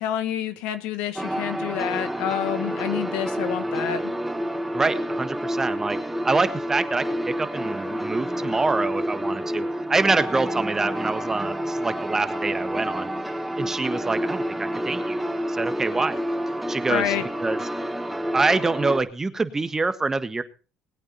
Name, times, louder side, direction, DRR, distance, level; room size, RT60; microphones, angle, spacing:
voice 1, 0.0-4.1 16.9-17.3, left 11 dB, 75° left, 10 dB, 1.6 m, -28 dB
sound 1, 1.2-19.0, equal, 5° right, 1.5 m, -29 dB
voice 2, 4.7-6.0 6.2-7.0 7.4-13.1 13.6-15.2 15.5-16.2 16.7-17.1 17.4-17.6 18.3-20.4, right 3 dB, 20° right, 11 dB, 1.4 m, -25 dB
20.0 x 8.8 x 4.2 m, 0.35 s
supercardioid pair, 80°, 2 cm